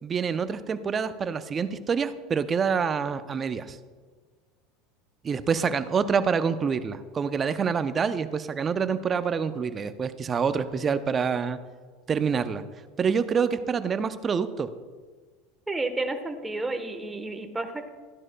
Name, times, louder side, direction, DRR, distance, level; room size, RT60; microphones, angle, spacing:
voice 1, 0.0-3.8 5.2-11.6 12.1-12.6 13.0-14.7, right 6 dB, 30° right, 12 dB, 0.6 m, -26 dB
voice 2, 15.7-17.9, right 2 dB, 15° right, 6 dB, 1.2 m, -31 dB
14.0 x 10.5 x 2.3 m, 1.5 s
hypercardioid pair, 85°, 0 cm